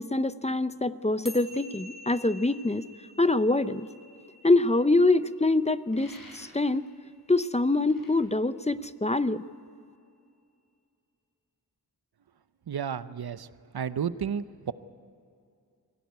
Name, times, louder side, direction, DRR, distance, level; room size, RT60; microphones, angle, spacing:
voice 1, 0.0-2.9 3.2-3.9 4.4-6.9 7.3-9.4, left 2 dB, 20° left, 13 dB, 0.6 m, -25 dB
sound 1, 1.3-7.8, left 1 dB, ahead, 4.2 m, -50 dB
sound 2, 5.9-6.7 7.9-8.1, left 2 dB, 65° left, 5.8 m, -50 dB
voice 2, 12.7-13.5 13.7-14.7, right 7 dB, 80° right, 14 dB, 0.8 m, -32 dB
24.0 x 16.5 x 9.4 m, 2.4 s
wide cardioid pair, 70°, 37 cm